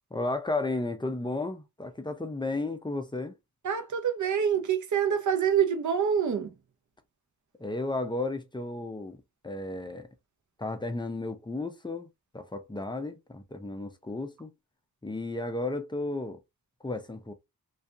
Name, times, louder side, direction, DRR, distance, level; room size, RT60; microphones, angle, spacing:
voice 1, 0.1-3.3 7.6-10.1 10.6-12.1 12.3-14.5 15.0-16.4 16.8-17.3, left 2 dB, 15° left, 0.4 m, -33 dB
voice 2, 3.6-6.5, right 8 dB, 50° right, 0.5 m, -26 dB
2.6 x 2.3 x 2.3 m
wide cardioid pair, 130°, 38 cm